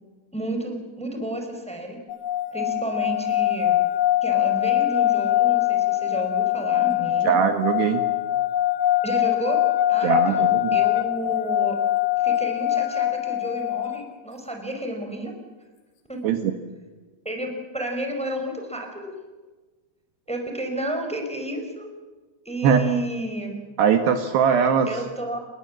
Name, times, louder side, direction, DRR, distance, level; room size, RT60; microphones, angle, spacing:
voice 1, 0.3-2.0 2.5-3.8 4.2-7.3 9.0-9.6 9.9-11.8 12.2-15.3 16.1-16.2 17.2-19.1 20.3-21.9 22.4-23.6 24.9-25.4, right 1 dB, ahead, 3 dB, 4.3 m, -31 dB
sound 1, 2.1-14.0, left 13 dB, 75° left, 4.1 m, -23 dB
voice 2, 7.2-8.0 10.0-10.7 16.2-16.5 22.6-22.8 23.8-24.9, right 7 dB, 65° right, 7 dB, 3.2 m, -20 dB
29.5 x 22.0 x 7.6 m, 1.3 s
omnidirectional pair, 5.6 m